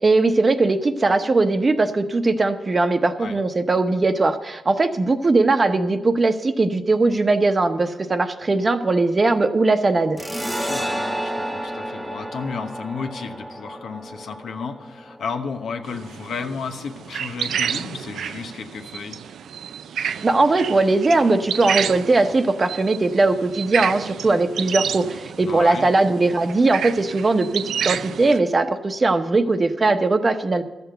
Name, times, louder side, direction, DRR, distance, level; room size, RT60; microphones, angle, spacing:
voice 1, 0.0-10.2 20.2-30.6, right 3 dB, 35° right, 8 dB, 0.9 m, -19 dB
sound 1, 10.2-17.4, right 1 dB, 10° right, 1.2 m, -32 dB
voice 2, 10.4-19.2 25.4-25.9, left 5 dB, 75° left, 6 dB, 1.0 m, -33 dB
sound 2, 15.9-28.4, right 8 dB, 85° right, 0.3 m, -30 dB
13.0 x 6.9 x 7.9 m, 1.1 s
cardioid pair, 90°, 0 cm